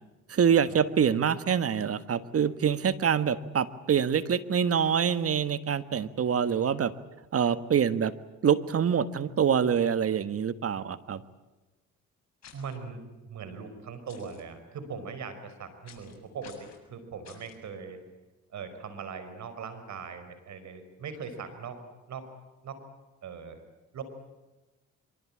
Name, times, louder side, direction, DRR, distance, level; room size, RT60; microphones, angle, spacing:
voice 1, 0.3-6.9 7.3-8.1 8.4-11.2, right 7 dB, 50° right, 13 dB, 1.5 m, -25 dB
sound 1, 12.4-12.8 14.1-14.4 15.9-16.1 16.4-16.8 17.2-17.6, left 7 dB, 60° left, 7.2 m, -52 dB
voice 2, 12.5-18.0 18.5-21.8 22.1-22.3 22.6-22.8 23.2-23.6 23.9-24.0, right 5 dB, 65° right, 10 dB, 5.2 m, -40 dB
24.5 x 24.0 x 8.8 m, 1.1 s
cardioid pair, 90°, 30 cm